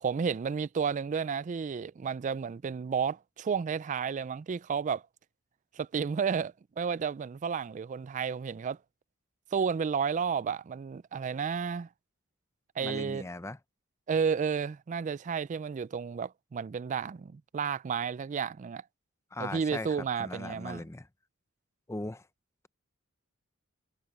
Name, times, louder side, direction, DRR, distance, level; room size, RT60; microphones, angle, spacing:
voice 1, 0.0-5.0 5.7-8.8 9.5-11.9 12.8-13.2 14.1-18.8 19.4-20.8, right 6 dB, 35° right, 0.3 m, -32 dB
voice 2, 12.8-13.6 19.3-21.1 21.9-22.3, left 2 dB, 15° left, 0.6 m, -39 dB
head